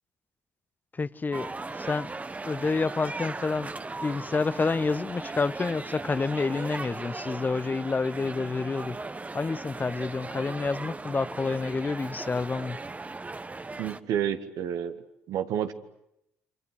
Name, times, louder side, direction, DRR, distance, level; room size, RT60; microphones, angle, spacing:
voice 1, 1.0-1.5 1.8-2.1 2.4-3.7 4.0-9.0 9.3-12.8, left 4 dB, 30° left, 1.0 m, -28 dB
sound 1, 1.3-14.0, right 3 dB, 25° right, 1.3 m, -38 dB
voice 2, 13.8-15.0 15.3-15.7, right 9 dB, 65° right, 1.7 m, -29 dB
28.5 x 26.0 x 8.1 m
hypercardioid pair, 50°, 6 cm